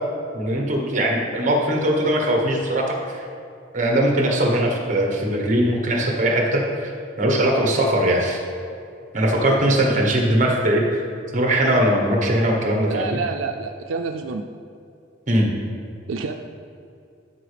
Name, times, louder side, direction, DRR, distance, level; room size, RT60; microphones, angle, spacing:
voice 1, 0.3-3.2 3.7-6.9 7.2-8.4 9.1-11.0 11.3-13.2 15.3-15.5, right 1 dB, 40° right, 1 dB, 1.1 m, -20 dB
voice 2, 12.9-14.4 16.1-16.3, right 4 dB, 85° right, 5 dB, 0.4 m, -28 dB
12.5 x 4.8 x 3.4 m, 2.5 s
head